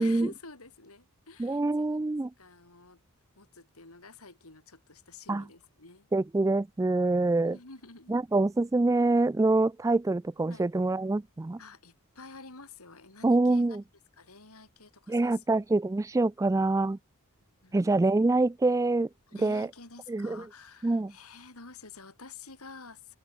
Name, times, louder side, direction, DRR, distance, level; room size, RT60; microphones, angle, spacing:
voice 1, 0.0-2.0 2.4-3.0 3.4-6.1 7.5-8.2 10.4-10.7 11.6-13.7 14.2-15.4 16.4-16.5 17.6-17.8 19.3-23.2, left 3 dB, 85° left, 4.5 m, -49 dB
voice 2, 1.4-2.3 5.3-5.4 6.1-7.6 8.1-11.6 13.2-13.8 15.1-17.0 17.7-19.1 19.4-19.7 20.1-20.4 20.8-21.1, right 2 dB, 15° right, 0.3 m, -25 dB
head